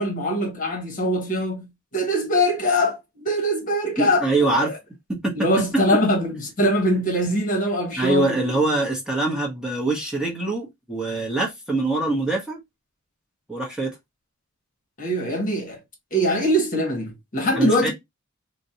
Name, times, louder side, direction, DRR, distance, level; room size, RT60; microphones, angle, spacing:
voice 1, 0.0-1.7 1.9-4.8 5.3-8.7 15.0-15.8 16.1-17.9, equal, 40° left, 1.1 m, -23 dB
voice 2, 4.0-4.7 5.1-5.6 8.0-12.6 13.5-13.9 17.6-17.9, right 2 dB, 5° right, 0.9 m, -24 dB
4.1 x 2.1 x 2.7 m
head